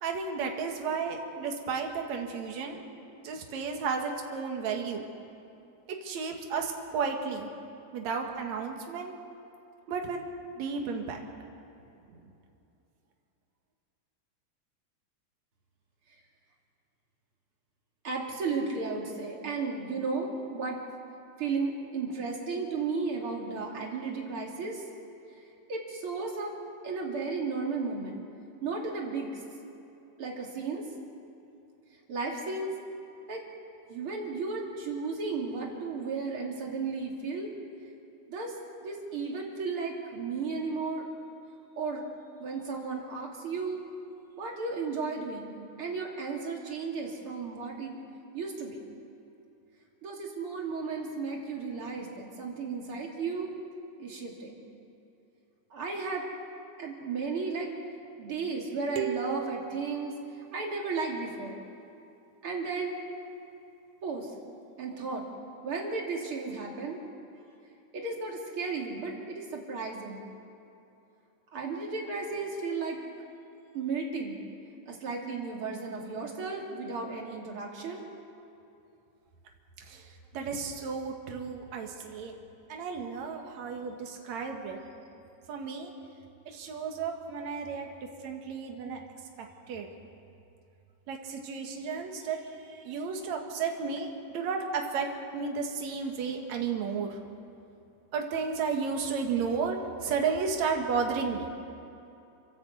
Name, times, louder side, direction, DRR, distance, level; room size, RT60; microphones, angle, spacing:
voice 1, 0.0-2.8 3.1-5.0 6.0-7.5 7.9-9.1 9.9-10.2 10.6-11.2 79.8-80.1 80.3-82.3 82.7-84.8 85.5-85.9 86.5-87.9 88.2-89.0 89.4-89.9 91.1-95.1 95.3-97.2 98.1-101.5, right 5 dB, 65° right, 2 dB, 2.9 m, -33 dB
voice 2, 18.0-20.8 21.4-24.8 25.7-28.2 28.6-29.4 30.2-30.9 32.1-32.8 33.3-33.4 33.9-37.5 38.3-38.6 38.8-41.1 41.8-42.1 42.4-43.8 44.4-48.0 48.3-48.9 50.0-53.5 54.0-54.6 55.7-56.3 56.8-57.7 58.2-60.1 60.5-61.6 62.4-63.0 64.0-64.3 64.8-65.3 65.6-67.0 67.9-70.2 71.5-73.0 73.7-74.4 74.9-78.1, right 4 dB, 45° right, -1 dB, 3.3 m, -34 dB
sound 1, 59.0-60.8, right 13 dB, 90° right, 2.5 m, -38 dB
29.0 x 11.0 x 8.1 m, 2.8 s
omnidirectional pair, 3.4 m